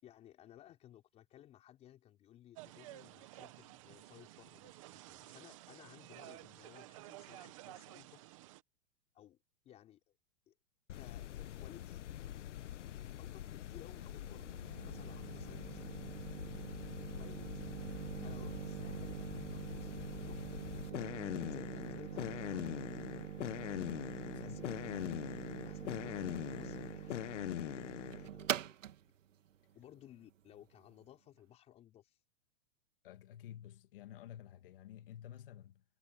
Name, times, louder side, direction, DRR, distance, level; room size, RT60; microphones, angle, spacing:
voice 1, 0.0-8.3 9.1-9.4 9.6-10.0 10.5-10.6 10.9-12.1 13.2-16.1 16.6-17.6 18.2-21.2 21.5-22.8 24.4-25.2 25.7-28.8 29.0-29.1 29.7-32.2, left 12 dB, 15° left, 5.3 m, -59 dB
sound 1, 2.6-8.6, right 17 dB, 25° right, 0.9 m, -53 dB
sound 2, 10.9-28.3, left 12 dB, 70° left, 1.0 m, -43 dB
sound 3, 13.4-31.0, right 10 dB, 85° right, 2.2 m, -45 dB
voice 2, 24.2-24.8 33.0-35.8, left 11 dB, 45° left, 2.0 m, -51 dB
supercardioid pair, 175°, 37 cm